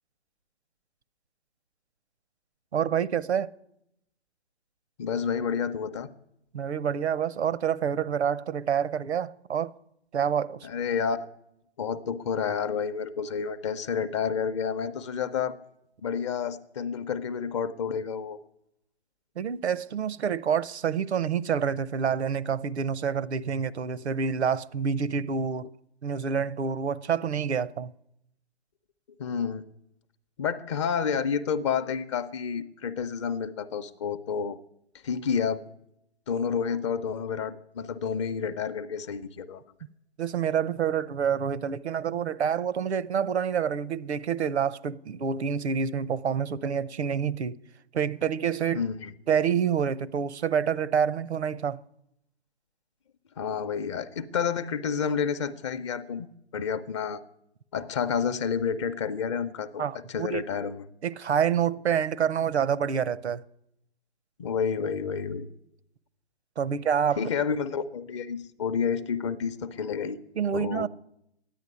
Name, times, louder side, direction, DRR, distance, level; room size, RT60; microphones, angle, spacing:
voice 1, 2.7-3.5 6.5-9.7 10.1-10.7 19.4-25.7 26.0-27.9 40.2-47.6 47.9-48.9 49.3-51.8 59.8-60.4 61.0-63.4 66.6-67.3 70.4-70.9, right 7 dB, 80° right, 0.8 m, -27 dB
voice 2, 5.0-6.1 10.6-11.3 11.8-15.6 16.0-18.4 29.2-29.6 30.4-34.6 35.0-35.6 36.3-39.6 48.7-49.1 53.4-56.3 56.5-57.2 57.7-60.8 64.4-65.5 67.2-70.2 70.5-70.9, left 6 dB, 30° left, 0.6 m, -30 dB
13.0 x 10.0 x 9.6 m
hypercardioid pair, 145°, 32 cm